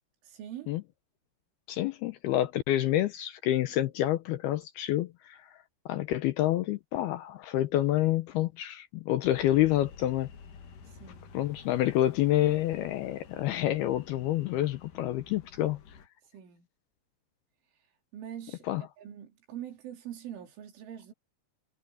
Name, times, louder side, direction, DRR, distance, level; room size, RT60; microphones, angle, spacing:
voice 1, 0.2-0.7 11.0-11.3 16.3-16.7 18.1-18.7 19.0-21.1, right 10 dB, 80° right, 5.7 m, -43 dB
voice 2, 1.7-5.5 5.9-10.3 11.3-15.8 18.7-18.8, left 14 dB, 80° left, 2.3 m, -28 dB
sound 1, 9.2-16.1, left 6 dB, 50° left, 3.2 m, -51 dB
omnidirectional pair, 5.5 m